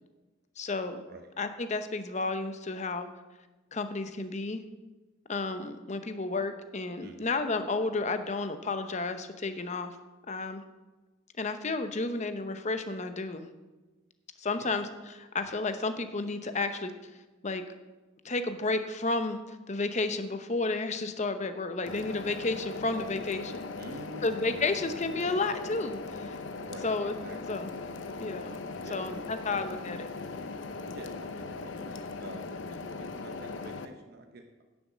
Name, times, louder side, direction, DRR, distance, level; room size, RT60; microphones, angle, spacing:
voice 1, 0.6-1.0 1.4-3.1 3.7-4.6 5.3-9.9 10.3-10.6 11.4-13.4 14.4-14.9 15.1-16.9 17.4-17.6 18.2-23.6 24.2-26.4 26.8-27.1 27.5-27.7 28.2-28.5 28.9-30.1, left 3 dB, 35° left, 9 dB, 0.8 m, -32 dB
voice 2, 7.0-7.3 14.6-14.7 23.8-24.3 26.6-27.6 28.8-29.2 29.5-29.6 30.9-34.6, right 1 dB, 55° right, 3 dB, 1.0 m, -48 dB
sound 1, 21.9-33.9, left 3 dB, 75° left, 0.8 m, -39 dB
10.5 x 7.1 x 7.3 m, 1.2 s
head